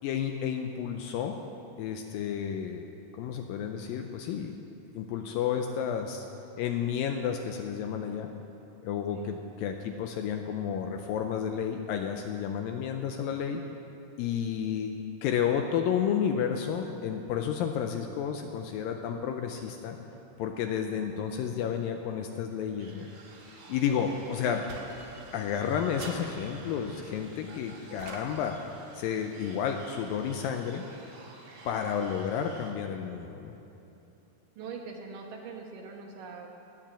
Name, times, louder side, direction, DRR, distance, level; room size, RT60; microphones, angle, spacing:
voice 1, 0.0-1.4 1.8-2.9 3.1-4.5 4.9-6.3 6.6-8.3 8.8-13.6 14.2-20.0 20.4-23.1 23.7-24.6 25.3-28.6 28.9-30.8 31.7-33.5, left 8 dB, 80° left, 5 dB, 2.1 m, -31 dB
voice 2, 20.8-21.9 24.0-24.2 34.6-36.5, right 5 dB, 70° right, 1 dB, 2.4 m, -43 dB
sound 1, 22.8-32.7, right 3 dB, 55° right, 2.7 m, -51 dB
sound 2, 24.7-25.5 26.0-26.9 28.0-28.8, right 2 dB, 85° right, 3.6 m, -44 dB
19.5 x 7.6 x 7.4 m, 2.9 s
omnidirectional pair, 4.6 m